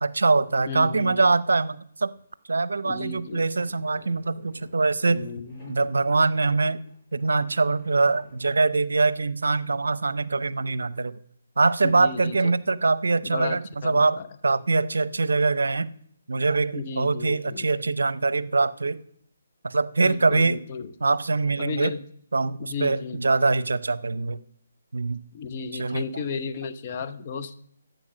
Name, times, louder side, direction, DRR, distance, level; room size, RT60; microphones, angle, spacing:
voice 1, 0.0-2.1 2.5-5.3 5.7-6.9 7.1-11.2 11.6-15.9 16.3-19.0 19.6-20.6 21.0-21.9 22.3-24.4 24.9-25.2 25.7-26.1, right 3 dB, 80° right, 18 dB, 0.6 m, -23 dB
voice 2, 0.7-1.2 2.8-3.5 5.1-5.8 11.8-12.5 13.2-14.3 16.7-17.7 20.0-20.9 21.6-22.0 22.6-23.2 25.3-27.5, left 5 dB, 40° left, 9 dB, 1.0 m, -34 dB
sound 1, 3.5-8.7, left 1 dB, 15° left, 6.3 m, -54 dB
13.0 x 8.0 x 6.3 m, 0.67 s
hypercardioid pair, 150°, 0 cm